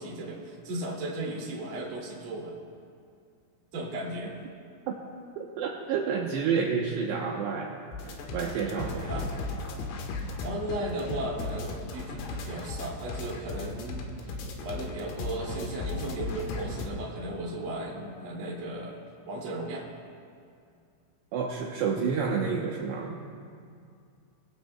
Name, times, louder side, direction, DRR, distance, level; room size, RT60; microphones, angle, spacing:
voice 1, 0.0-2.5 3.7-4.3 9.1-9.3 10.4-14.1 14.6-19.0 19.3-19.9, right 1 dB, 40° right, -3 dB, 2.1 m, -35 dB
voice 2, 5.4-9.3 21.3-23.2, right 6 dB, 80° right, -1 dB, 2.5 m, -30 dB
sound 1, 7.9-16.9, left 3 dB, 85° left, 4.1 m, -36 dB
26.0 x 17.0 x 2.2 m, 2.4 s
omnidirectional pair, 5.8 m